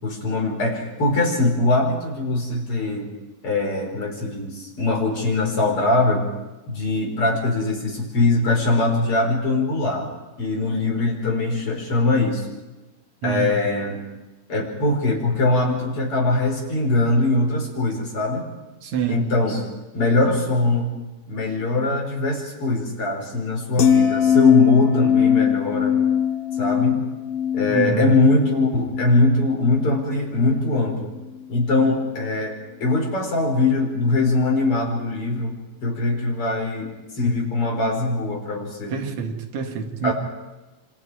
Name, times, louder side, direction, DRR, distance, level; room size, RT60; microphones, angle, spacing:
voice 1, 0.0-3.1 3.4-6.3 6.7-10.1 10.4-12.5 13.2-14.0 14.5-18.5 19.1-19.6 19.9-21.0 21.3-26.0 26.6-27.0 27.5-31.1 31.5-35.6 35.8-38.9 40.0-40.1, left 2 dB, 35° left, 0 dB, 5.1 m, -22 dB
voice 2, 13.2-13.6 18.8-19.3 27.7-28.1 38.9-40.1, right 7 dB, 55° right, 4 dB, 2.7 m, -26 dB
sound 1, 23.8-30.1 30.4-30.7, left 8 dB, 65° left, 3.0 m, -21 dB
28.0 x 25.5 x 4.9 m, 1.1 s
omnidirectional pair, 4.3 m